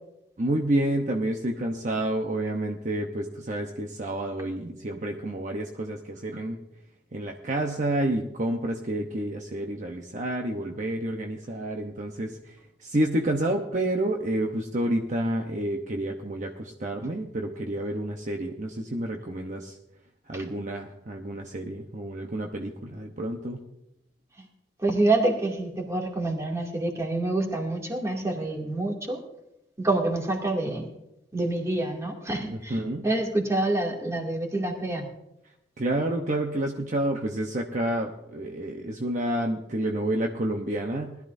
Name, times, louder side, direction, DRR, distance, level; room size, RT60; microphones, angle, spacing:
voice 1, 0.4-6.6 7.1-19.8 20.3-23.6 32.5-33.0 35.8-41.2, right 1 dB, 45° right, 2 dB, 0.9 m, -29 dB
voice 2, 24.8-29.2 29.8-30.9 31.3-32.8 33.0-35.1, right 2 dB, 15° right, 0 dB, 2.5 m, -27 dB
20.5 x 13.0 x 2.7 m, 0.86 s
head